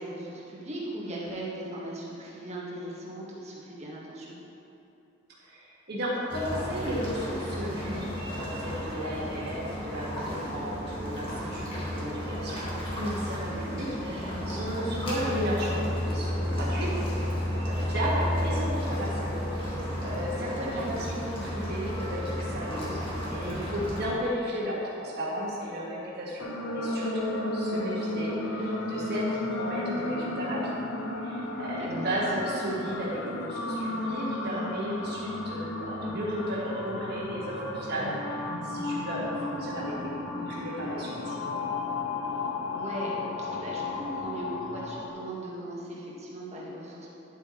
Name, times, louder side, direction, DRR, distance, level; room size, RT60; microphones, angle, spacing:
voice 1, 0.0-4.4 20.6-20.8 31.8-32.0 42.6-47.1, right 1 dB, 35° right, -5 dB, 1.7 m, -38 dB
voice 2, 5.4-16.9 17.6-26.5 26.7-30.8 31.1-41.3, equal, 55° right, -8 dB, 1.7 m, -34 dB
sound 1, 6.3-24.0, equal, 30° left, 1.8 m, -32 dB
sound 2, 26.4-45.1, left 2 dB, 80° left, 0.9 m, -33 dB
10.5 x 7.7 x 3.2 m, 2.8 s
head